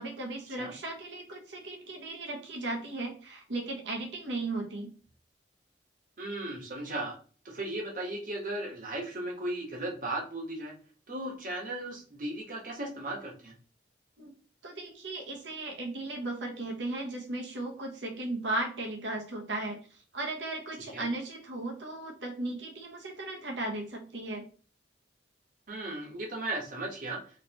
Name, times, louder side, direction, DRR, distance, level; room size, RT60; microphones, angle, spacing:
voice 1, 0.0-4.9 14.2-14.3 14.6-24.4, right 2 dB, 75° right, 1 dB, 1.0 m, -36 dB
voice 2, 6.2-7.2 7.4-10.7 11.1-13.5 20.9-21.1 25.7-27.2, right 1 dB, 50° right, 0 dB, 1.1 m, -36 dB
4.0 x 3.1 x 2.9 m, 0.40 s
head